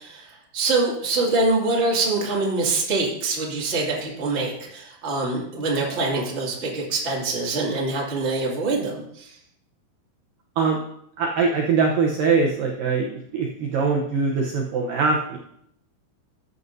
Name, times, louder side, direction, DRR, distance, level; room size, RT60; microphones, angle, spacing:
voice 1, 0.0-9.4, right 3 dB, 25° right, -3 dB, 1.7 m, -24 dB
voice 2, 11.2-15.4, right 4 dB, 70° right, -1 dB, 2.2 m, -22 dB
14.5 x 9.7 x 2.7 m, 0.73 s
omnidirectional pair, 4.9 m